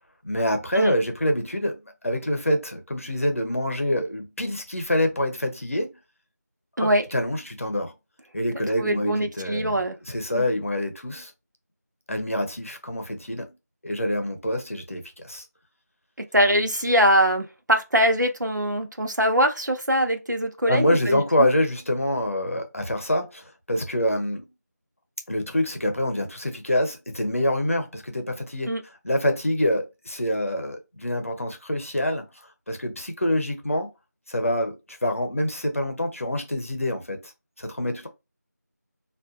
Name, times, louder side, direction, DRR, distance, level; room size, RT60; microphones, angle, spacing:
voice 1, 0.2-1.8 2.0-6.0 6.8-7.9 8.3-9.7 10.1-11.3 12.1-13.6 13.8-15.4 20.7-24.5 25.3-28.7 29.0-32.2 32.7-33.9 34.3-37.3 37.6-38.1, left 1 dB, 50° left, 0.8 m, -26 dB
voice 2, 8.8-10.0 10.3-10.5 16.3-21.5 28.7-28.8, equal, 90° right, 0.8 m, -22 dB
3.6 x 2.5 x 2.4 m
figure-of-eight pair, 170°, 10 cm